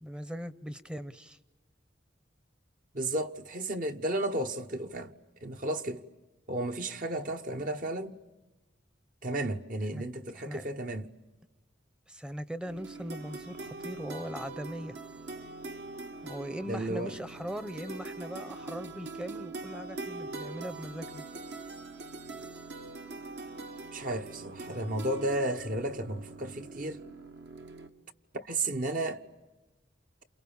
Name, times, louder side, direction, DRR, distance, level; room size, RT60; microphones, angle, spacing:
voice 1, 0.0-1.4 9.9-10.0 10.3-10.7 12.1-15.0 16.2-21.2, equal, 5° right, 0.8 m, -40 dB
voice 2, 2.9-5.1 5.4-6.0 6.5-8.1 9.2-11.1 16.7-17.1 23.9-27.0 28.3-29.2, right 1 dB, 50° right, 1.3 m, -33 dB
sound 1, 12.7-27.9, right 3 dB, 65° right, 1.9 m, -43 dB
29.5 x 28.5 x 7.1 m
head